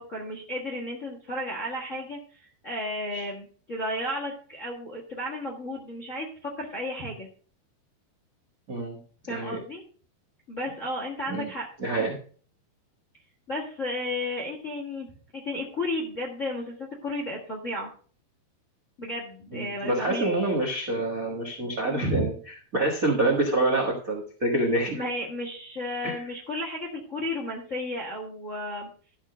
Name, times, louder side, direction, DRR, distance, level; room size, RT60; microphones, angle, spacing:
voice 1, 0.0-7.3 9.3-9.8 10.5-11.7 13.5-15.1 15.3-17.9 19.0-20.3 21.9-22.3 24.9-28.9, left 1 dB, 45° left, -2 dB, 0.9 m, -33 dB
voice 2, 8.7-9.0 9.3-9.6 11.3-11.5 11.8-12.2 19.5-22.3 22.7-25.0 26.0-26.1, right 2 dB, 70° right, 0 dB, 0.8 m, -26 dB
13.0 x 4.6 x 6.2 m, 0.42 s
omnidirectional pair, 4.5 m